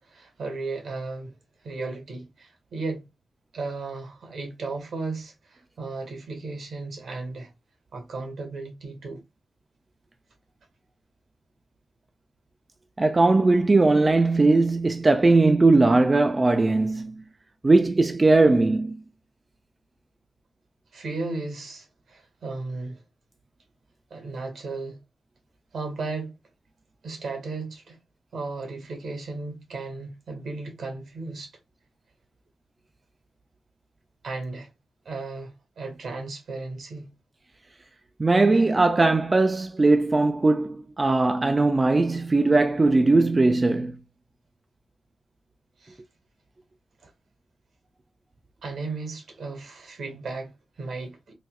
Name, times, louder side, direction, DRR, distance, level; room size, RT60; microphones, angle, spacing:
voice 1, 0.1-1.4 1.6-3.0 3.5-7.5 7.9-9.2 20.9-23.0 24.1-25.0 25.7-26.3 27.0-28.0 28.3-31.5 34.2-34.7 35.0-37.1 45.8-46.0 47.0-47.1 48.6-51.3, right 3 dB, 75° right, 1.5 m, -35 dB
voice 2, 13.0-17.2 17.6-19.0 38.2-44.0, right 3 dB, 25° right, 0.3 m, -19 dB
4.1 x 2.3 x 2.2 m
wide cardioid pair, 110°, 0 cm